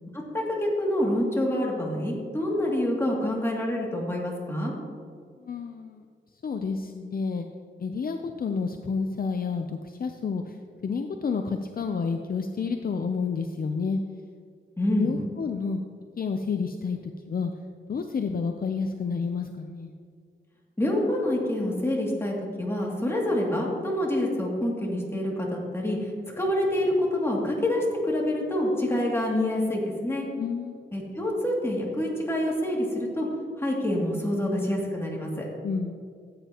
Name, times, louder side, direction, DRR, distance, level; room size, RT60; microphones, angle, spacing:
voice 1, 0.1-4.7 14.8-15.1 20.8-26.1 26.4-30.3 30.9-33.3 33.6-35.5, left 1 dB, 15° left, -3 dB, 2.5 m, -27 dB
voice 2, 5.4-6.0 6.4-7.5 7.8-10.6 10.8-14.0 15.0-15.8 16.2-17.0 17.3-17.5 17.9-19.9 30.1-30.8 35.3-36.0, left 5 dB, 50° left, 6 dB, 0.6 m, -30 dB
15.0 x 9.0 x 3.0 m, 2.1 s
wide cardioid pair, 90°, 20 cm